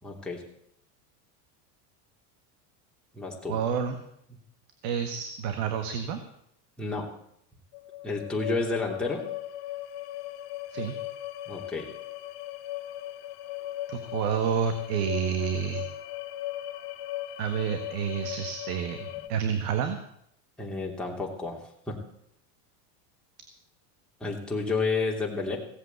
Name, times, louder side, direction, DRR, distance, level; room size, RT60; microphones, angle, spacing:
voice 1, 0.0-0.4 3.1-3.6 6.8-7.1 8.0-9.2 11.5-11.9 20.6-21.6 21.9-22.0 24.2-25.6, left 3 dB, ahead, -3 dB, 3.2 m, -30 dB
voice 2, 3.5-3.9 4.8-6.2 10.7-10.9 13.9-15.9 17.4-20.0, right 7 dB, 70° right, 7 dB, 1.7 m, -29 dB
sound 1, 7.7-19.3, left 14 dB, 55° left, 1.4 m, -38 dB
16.5 x 7.9 x 8.3 m, 0.73 s
supercardioid pair, 110°, 46 cm